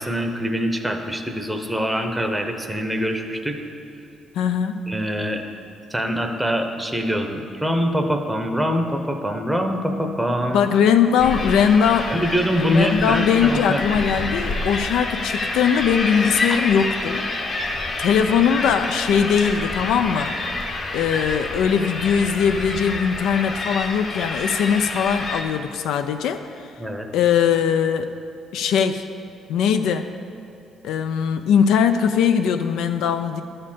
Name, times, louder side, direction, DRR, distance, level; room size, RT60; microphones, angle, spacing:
voice 1, 0.0-3.6 4.9-5.4 5.9-10.7 12.1-13.8 26.8-27.1, equal, 5° right, 4 dB, 0.7 m, -24 dB
voice 2, 4.3-4.8 10.5-12.1 12.6-17.3 18.0-20.3 20.9-26.7 27.1-28.1 28.5-29.1 29.5-30.1 30.8-33.4, left 7 dB, 85° left, 8 dB, 0.4 m, -20 dB
sound 1, 11.2-25.4, left 2 dB, 40° left, 0.9 m, -28 dB
11.0 x 4.3 x 7.3 m, 2.8 s
cardioid pair, 135°, 0 cm